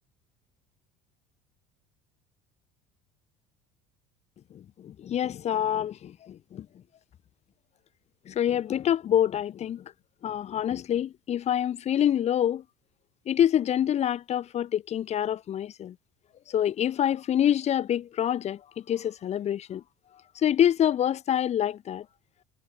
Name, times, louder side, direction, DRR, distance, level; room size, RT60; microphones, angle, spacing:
voice 1, 4.5-6.7 8.3-9.9 10.2-12.6 13.3-16.0 16.5-19.8 20.3-22.1, left 10 dB, 45° left, 4.7 m, -26 dB
supercardioid pair, 105°, 16 cm